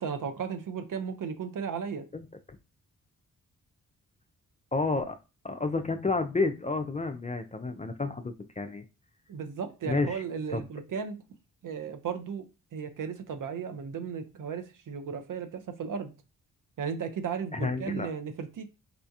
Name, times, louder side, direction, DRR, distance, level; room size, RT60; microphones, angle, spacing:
voice 1, 0.0-2.1 9.3-11.2 11.6-12.5 12.7-16.1 16.8-18.6, right 6 dB, 55° right, 0.7 m, -35 dB
voice 2, 2.1-2.6 4.7-5.2 5.4-8.8 9.8-10.2 10.5-10.6 17.5-18.1, left 3 dB, 20° left, 0.4 m, -30 dB
4.2 x 2.3 x 2.7 m
hypercardioid pair, 40°, 38 cm